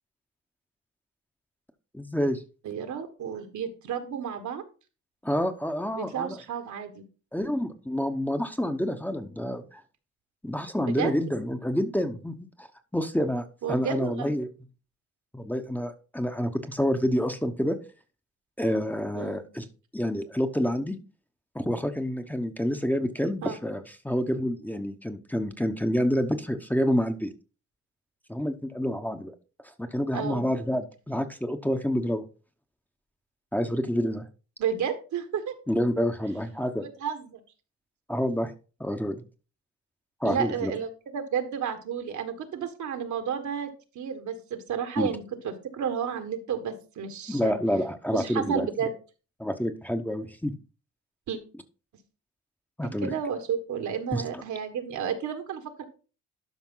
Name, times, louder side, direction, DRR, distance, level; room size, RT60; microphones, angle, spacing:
voice 1, 1.9-2.4 5.2-6.4 7.3-9.8 10.4-12.7 12.9-14.5 15.3-17.8 18.6-19.7 19.9-21.0 21.5-27.3 28.3-29.3 29.8-32.2 33.5-34.3 35.7-36.9 38.1-38.5 38.8-39.2 40.2-40.7 45.0-45.1 47.3-48.7 49.4-50.6 52.8-53.1 54.1-54.2, equal, 5° left, 5 dB, 1.0 m, -28 dB
voice 2, 2.6-4.6 6.0-7.0 10.8-11.1 13.6-14.3 19.1-19.4 23.4-23.6 30.1-30.4 34.6-35.6 36.8-37.4 40.2-43.7 44.0-47.6 48.1-48.9 51.3-51.4 53.0-55.8, right 7 dB, 70° right, 7 dB, 1.8 m, -32 dB
12.0 x 5.2 x 3.9 m, 0.35 s
cardioid pair, 90°, 30 cm